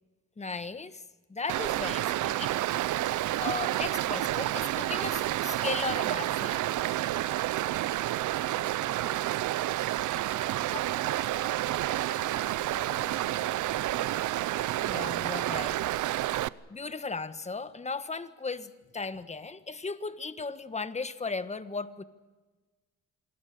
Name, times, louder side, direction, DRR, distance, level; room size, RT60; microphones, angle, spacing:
voice 1, 0.4-1.0 1.3-2.6 3.0-6.7 14.8-15.8 16.7-22.0, left 4 dB, 20° left, 12 dB, 1.5 m, -36 dB
Stream, 1.5-16.5, right 15 dB, 75° right, 0.7 m, -30 dB
voice 2, 9.9-14.2, right 4 dB, 50° right, 5 dB, 7.4 m, -47 dB
27.0 x 20.5 x 6.9 m, 1.3 s
cardioid pair, 90°, 30 cm